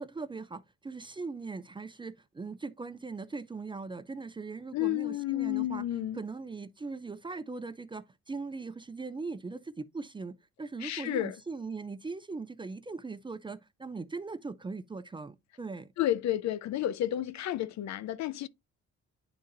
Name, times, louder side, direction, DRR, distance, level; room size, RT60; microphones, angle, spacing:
voice 1, 0.0-5.9 6.1-15.9, right 4 dB, 15° right, 0.4 m, -40 dB
voice 2, 4.7-6.2 10.8-11.4 16.0-18.5, left 13 dB, 65° left, 0.5 m, -31 dB
9.9 x 3.8 x 2.5 m
cardioid pair, 90°, 30 cm